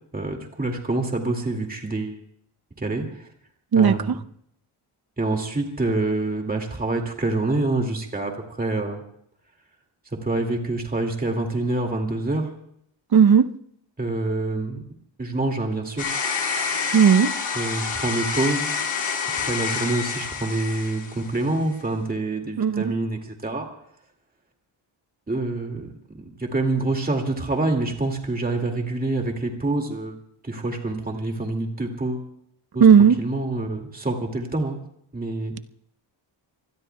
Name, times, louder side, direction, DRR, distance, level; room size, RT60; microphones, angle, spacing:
voice 1, 0.1-2.2 2.8-3.3 3.7-4.2 5.2-9.0 10.2-12.5 14.0-14.8 15.2-16.1 17.5-18.7 19.4-23.7 25.3-30.2 30.4-32.3 32.7-32.9 33.2-34.8 35.1-35.5, right 2 dB, 20° right, 2.2 m, -26 dB
voice 2, 13.1-13.5 16.9-17.3 22.6-22.8 32.8-33.2, right 7 dB, 50° right, 0.8 m, -14 dB
sound 1, 16.0-21.5, left 5 dB, 80° left, 4.0 m, -28 dB
26.5 x 20.5 x 2.3 m
wide cardioid pair, 150°, 48 cm